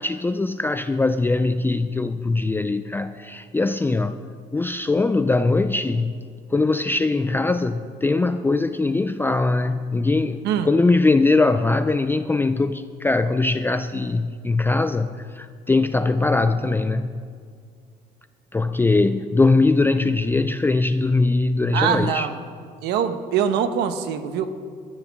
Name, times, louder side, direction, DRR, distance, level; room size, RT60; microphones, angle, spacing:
voice 1, 0.0-4.2 4.5-6.1 6.5-17.2 18.5-22.3, left 3 dB, 10° left, 10 dB, 0.4 m, -21 dB
voice 2, 21.7-22.3 22.8-24.5, right 8 dB, 80° right, 9 dB, 1.1 m, -23 dB
19.0 x 13.5 x 3.6 m, 2.1 s
cardioid pair, 110°, 17 cm